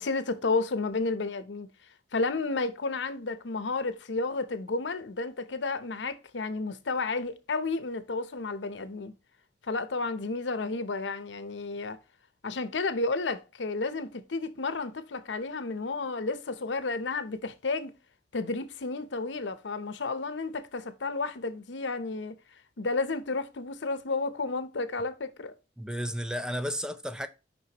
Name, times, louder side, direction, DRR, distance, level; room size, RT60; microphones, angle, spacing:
voice 1, 0.0-1.7 2.1-9.1 9.7-12.0 12.4-17.9 18.3-22.4 22.8-25.5, left 3 dB, 85° left, 0.8 m, -32 dB
voice 2, 25.8-27.3, equal, 5° right, 0.5 m, -33 dB
6.2 x 5.6 x 2.9 m
head